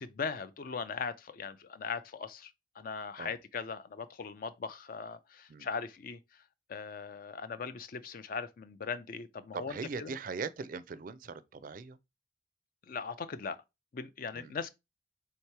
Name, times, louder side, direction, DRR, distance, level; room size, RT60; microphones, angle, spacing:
voice 1, 0.0-2.5 2.8-6.4 6.7-10.2 12.9-13.6 13.9-14.7, left 5 dB, 50° left, 0.4 m, -39 dB
voice 2, 9.5-12.0 14.3-14.5, right 4 dB, 50° right, 0.4 m, -40 dB
3.6 x 2.9 x 4.5 m
head